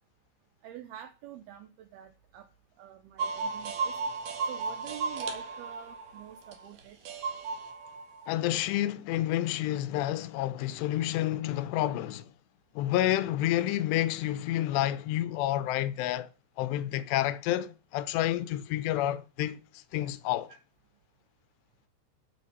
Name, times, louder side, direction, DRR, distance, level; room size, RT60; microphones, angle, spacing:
voice 1, 0.6-2.5 2.8-3.9 4.5-7.0 15.7-15.8 20.5-20.6, right 11 dB, 75° right, 2.4 m, -47 dB
sound 1, 3.2-8.3, right 4 dB, 60° right, 2.6 m, -34 dB
voice 2, 8.3-12.3 12.8-16.3 16.6-20.5, left 13 dB, 80° left, 2.8 m, -29 dB
12.0 x 6.4 x 5.5 m
omnidirectional pair, 5.4 m